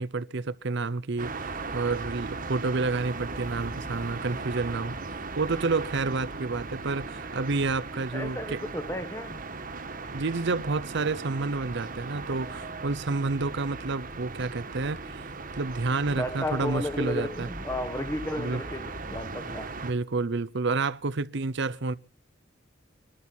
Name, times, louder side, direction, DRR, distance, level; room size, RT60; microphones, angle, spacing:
voice 1, 0.0-8.6 10.1-15.3 15.6-17.5 18.4-18.6 19.8-21.9, right 3 dB, 60° right, 0.7 m, -29 dB
sound 1, 1.2-19.9, right 3 dB, 45° right, 1.6 m, -38 dB
voice 2, 8.1-9.4 16.1-19.7, left 1 dB, 15° left, 1.2 m, -33 dB
24.5 x 12.5 x 4.4 m
head